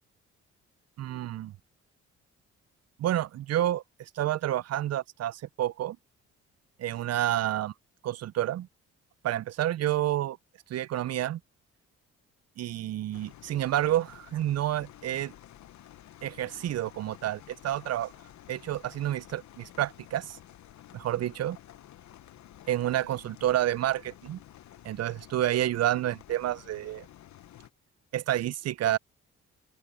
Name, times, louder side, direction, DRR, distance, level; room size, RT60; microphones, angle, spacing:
voice 1, 1.0-1.5 3.0-6.0 6.8-7.7 8.0-8.7 9.2-10.4 10.7-11.4 12.6-15.3 16.2-18.1 18.5-20.4 20.9-21.6 22.7-24.4 24.8-27.1 28.1-29.0, right 12 dB, 55° right, 0.5 m, -29 dB
sound 1, 13.1-27.7, left 12 dB, 65° left, 0.9 m, -52 dB
open air
supercardioid pair, 65°, 30 cm